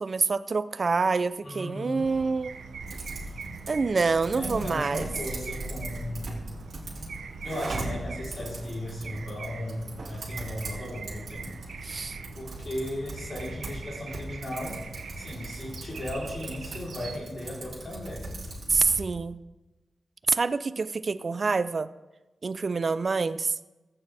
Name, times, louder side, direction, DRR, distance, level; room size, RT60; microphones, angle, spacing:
voice 1, 0.0-2.5 3.7-5.1 11.8-12.2 18.7-19.4 20.3-21.9 22.4-23.5, right 4 dB, 50° right, 14 dB, 0.5 m, -26 dB
voice 2, 1.4-2.1 4.3-6.5 7.4-11.6 12.4-14.8 15.2-18.4, left 1 dB, 50° left, -5 dB, 3.8 m, -36 dB
sound 1, 2.0-17.2, right 5 dB, 90° right, 0.8 m, -43 dB
Typing, 2.8-19.0, right 2 dB, 70° right, 3.6 m, -39 dB
15.0 x 9.0 x 3.5 m, 1.1 s
wide cardioid pair, 85°, 0 cm